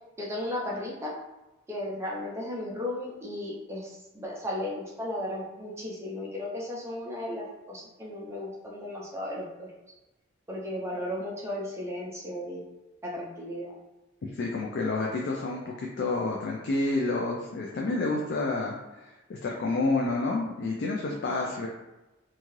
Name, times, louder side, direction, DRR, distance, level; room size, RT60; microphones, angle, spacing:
voice 1, 0.2-1.1 1.7-9.7 10.5-12.6 13.0-13.7 21.4-21.5, left 1 dB, 15° right, -4 dB, 0.4 m, -35 dB
voice 2, 14.2-21.7, left 3 dB, 55° left, -1 dB, 0.3 m, -29 dB
2.6 x 2.3 x 3.0 m, 1.1 s
head